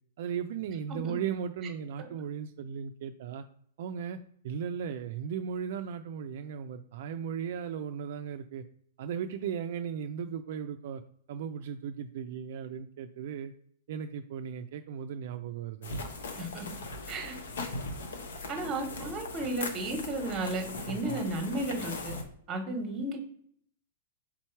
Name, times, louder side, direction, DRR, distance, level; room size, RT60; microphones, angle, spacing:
voice 1, 0.2-3.4 3.8-8.6 9.0-11.0 11.3-13.5 13.9-16.1 20.9-21.2, right 7 dB, 60° right, 6 dB, 0.3 m, -36 dB
sound 1, 15.8-22.2, left 3 dB, 80° left, 0.9 m, -39 dB
voice 2, 18.5-22.2 22.5-23.2, right 2 dB, 20° right, 4 dB, 1.1 m, -34 dB
3.6 x 3.1 x 4.5 m, 0.64 s
hypercardioid pair, 155°, 0 cm